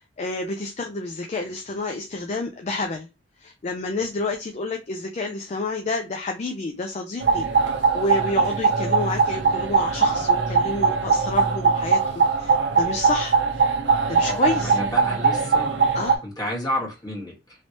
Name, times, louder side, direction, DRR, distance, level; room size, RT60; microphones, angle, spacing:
voice 1, 0.2-3.1 3.4-7.5 7.9-13.4 14.1-14.8 15.9-16.2, left 2 dB, 40° left, 0.4 m, -29 dB
sound 1, 7.2-16.2, right 5 dB, 80° right, 0.6 m, -21 dB
voice 2, 14.2-15.7 16.2-17.6, left 1 dB, 20° left, 1.5 m, -31 dB
3.1 x 3.0 x 2.8 m
head